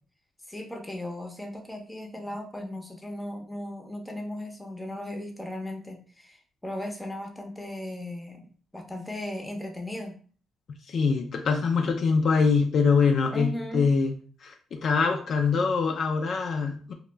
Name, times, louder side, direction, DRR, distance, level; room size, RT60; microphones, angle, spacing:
voice 1, 0.5-8.4 8.7-10.2 13.3-13.9, left 1 dB, 10° left, 3 dB, 0.6 m, -36 dB
voice 2, 10.9-14.2 14.4-16.9, left 5 dB, 60° left, 3 dB, 0.3 m, -24 dB
2.2 x 2.1 x 3.2 m, 0.43 s
cardioid pair, 90°, 0 cm